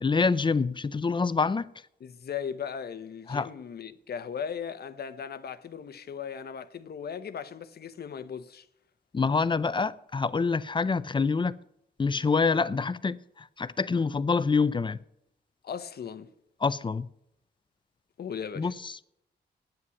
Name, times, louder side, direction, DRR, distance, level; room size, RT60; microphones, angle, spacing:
voice 1, 0.0-1.7 3.3-3.5 9.1-11.6 12.0-15.0 16.6-17.1 18.6-19.0, left 4 dB, 25° left, 0.5 m, -26 dB
voice 2, 2.0-8.7 15.6-16.3 18.2-18.7, left 7 dB, 60° left, 0.9 m, -37 dB
9.3 x 8.6 x 9.5 m
cardioid pair, 110°, 18 cm